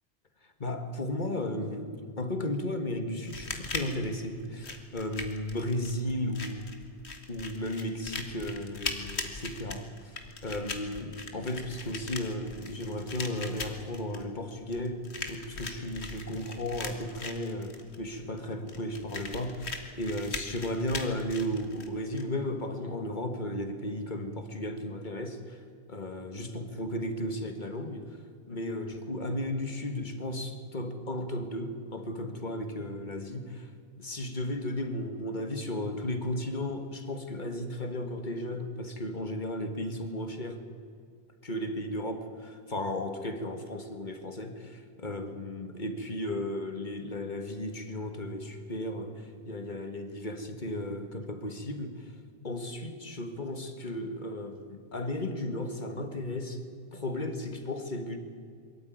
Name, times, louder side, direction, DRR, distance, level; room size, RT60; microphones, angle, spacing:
voice 1, 0.6-6.7 7.3-10.2 10.4-15.0 15.3-25.6 25.9-28.2 28.5-33.7 34.0-40.6 41.4-52.1 52.4-56.6 56.9-58.2, left 1 dB, 45° left, 7 dB, 1.9 m, -35 dB
sound 1, 3.2-22.2, left 3 dB, 90° left, 2.0 m, -40 dB
22.5 x 14.0 x 9.4 m, 2.1 s
omnidirectional pair, 1.1 m